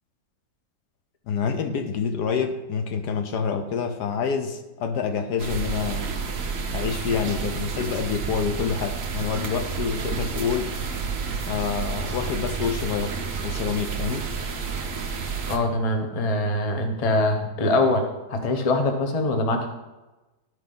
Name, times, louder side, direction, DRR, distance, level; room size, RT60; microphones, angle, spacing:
voice 1, 1.3-6.1 6.7-10.8 11.4-14.3, left 6 dB, 70° left, 7 dB, 1.1 m, -27 dB
sound 1, 5.4-15.6, right 5 dB, 55° right, 1.1 m, -30 dB
voice 2, 15.5-19.7, left 2 dB, 40° left, 4 dB, 0.5 m, -23 dB
12.5 x 4.7 x 3.8 m, 1.1 s
omnidirectional pair, 2.1 m